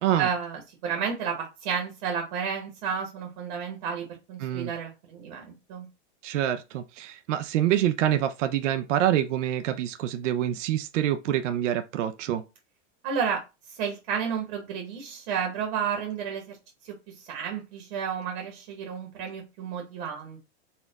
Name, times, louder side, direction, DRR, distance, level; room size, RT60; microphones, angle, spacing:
voice 1, 0.2-5.9 13.0-13.4 13.7-16.6 16.8-20.4, right 7 dB, 40° right, 1.0 m, -32 dB
voice 2, 4.4-4.7 6.2-12.4, right 11 dB, 85° right, 0.6 m, -26 dB
4.2 x 2.4 x 3.9 m
supercardioid pair, 175°, 36 cm